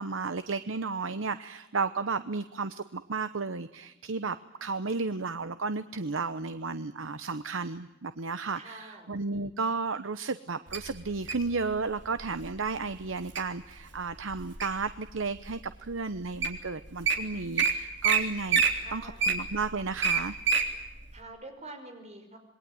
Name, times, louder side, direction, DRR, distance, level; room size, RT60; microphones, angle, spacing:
voice 1, 0.0-18.6 18.9-20.4, right 4 dB, 85° right, 12 dB, 0.9 m, -33 dB
voice 2, 8.5-9.1 18.7-19.2 21.1-22.4, right 2 dB, 35° right, 5 dB, 5.5 m, -46 dB
Wild animals, 10.7-11.5 12.2-12.5 13.0-13.4 13.9-14.9 15.5-15.6 16.1-16.2 16.4-16.6 16.8-17.1 17.6-17.7 18.0-18.2 18.5-20.7 21.1-21.2, right 6 dB, 60° right, 3.5 m, -25 dB
27.5 x 21.5 x 9.5 m, 1.0 s
head